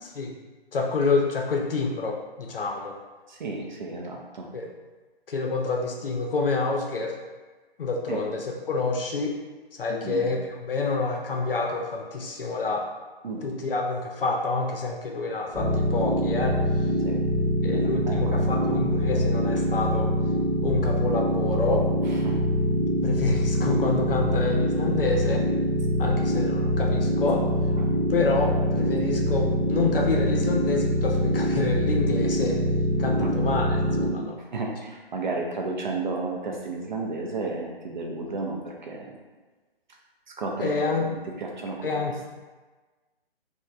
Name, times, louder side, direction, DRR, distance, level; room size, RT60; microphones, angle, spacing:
voice 1, 0.7-3.0 4.5-4.7 5.3-7.2 7.8-9.3 9.8-12.9 13.4-16.6 17.6-20.1 20.6-21.9 23.0-25.5 26.0-27.5 28.1-32.6 33.0-34.4 40.6-41.1 41.8-42.1, left 3 dB, 65° left, 1 dB, 0.6 m, -28 dB
voice 2, 3.3-4.5 8.1-8.2 9.9-10.3 13.2-13.4 17.0-17.2 17.6-18.8 22.1-22.4 27.8-27.9 33.2-33.3 34.5-39.1 40.4-40.7 41.0-41.9, right 3 dB, 50° right, 0 dB, 0.5 m, -33 dB
sound 1, 15.5-34.1, equal, 5° left, 0.4 m, -24 dB
3.0 x 2.2 x 2.4 m, 1.3 s
figure-of-eight pair, 135°, 31 cm